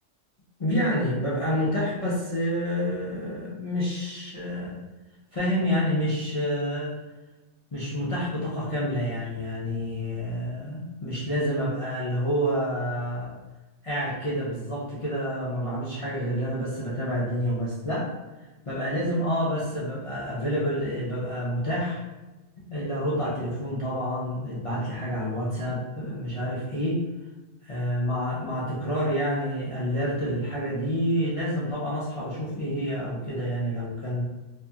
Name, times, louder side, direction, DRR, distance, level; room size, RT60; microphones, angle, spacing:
voice 1, 0.6-4.8 5.3-7.0 7.7-13.4 13.8-18.1 18.7-22.0 22.7-27.0 27.6-34.3, equal, 50° left, -8 dB, 0.4 m, -28 dB
2.7 x 2.6 x 2.3 m, 1.1 s
omnidirectional pair, 1.3 m